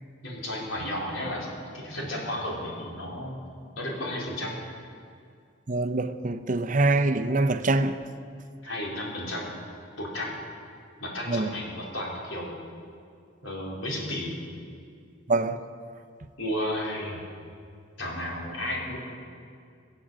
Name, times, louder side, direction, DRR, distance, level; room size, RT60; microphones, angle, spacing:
voice 1, 0.2-3.4 3.8-4.5 8.6-9.5 10.0-10.3 11.0-12.6 13.4-14.3 16.4-17.2 18.0-19.0, left 1 dB, 85° left, 4.3 m, -33 dB
voice 2, 5.7-8.0 11.3-11.5 15.3-15.6, right 2 dB, 40° right, 0.7 m, -24 dB
21.5 x 7.8 x 7.5 m
head